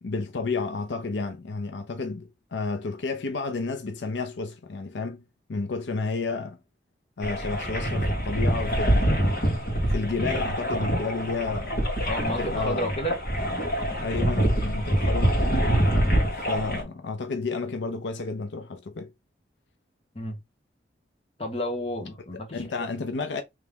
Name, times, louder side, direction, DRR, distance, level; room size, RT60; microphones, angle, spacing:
voice 1, 0.0-5.2 5.5-6.6 7.2-9.3 9.9-11.8 12.3-13.0 14.0-15.4 16.3-19.1 22.5-23.4, left 4 dB, 75° left, 0.6 m, -31 dB
sound 1, 7.2-16.8, equal, 50° left, 1.6 m, -25 dB
voice 2, 12.0-13.2 20.1-20.4 21.4-22.7, equal, 30° left, 1.1 m, -31 dB
3.4 x 3.2 x 3.4 m
head